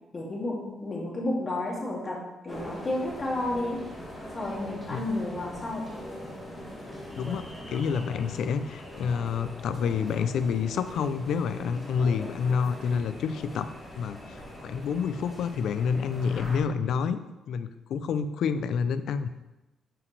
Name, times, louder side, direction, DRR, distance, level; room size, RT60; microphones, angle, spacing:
voice 1, 0.1-2.2 2.4-3.8 4.3-5.8, left 1 dB, 30° left, -4 dB, 2.2 m, -31 dB
sound 1, 2.5-16.6, left 1 dB, 5° left, 2.1 m, -42 dB
voice 2, 7.2-13.7 14.0-17.2 17.5-19.3, left 6 dB, 70° left, 12 dB, 0.4 m, -28 dB
7.2 x 5.6 x 3.3 m, 1.0 s
cardioid pair, 90°, 0 cm